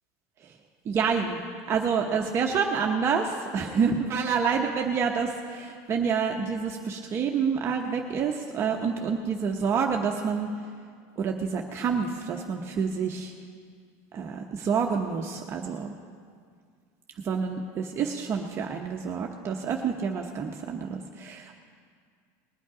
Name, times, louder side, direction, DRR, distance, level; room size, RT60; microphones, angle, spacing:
voice 1, 0.8-10.5 11.2-13.3 14.1-15.9 17.2-21.6, right 6 dB, 30° right, 2 dB, 0.8 m, -28 dB
20.0 x 8.4 x 4.9 m, 2.1 s
supercardioid pair, 135°, 8 cm